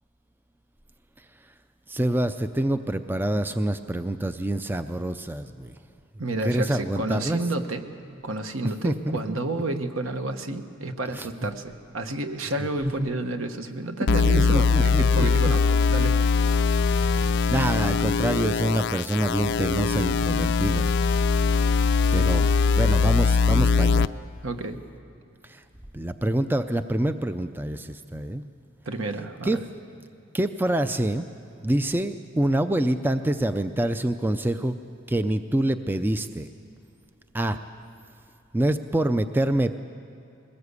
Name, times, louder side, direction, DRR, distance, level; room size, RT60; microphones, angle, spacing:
voice 1, 1.9-5.8 6.4-7.4 8.8-9.6 11.1-11.3 13.0-13.1 14.3-15.3 17.0-20.9 22.1-24.1 25.4-25.6 25.9-28.5 29.4-29.6 30.3-31.3 31.6-34.7 35.1-36.5 37.3-37.6 38.5-39.7, right 1 dB, 10° right, 10 dB, 0.4 m, -26 dB
voice 2, 6.2-7.8 8.2-16.2 24.4-24.8 28.8-29.6, right 2 dB, 70° right, 7 dB, 1.3 m, -30 dB
sound 1, 14.1-24.1, left 5 dB, 55° left, 0.5 m, -21 dB
22.0 x 19.0 x 8.3 m, 2.7 s
head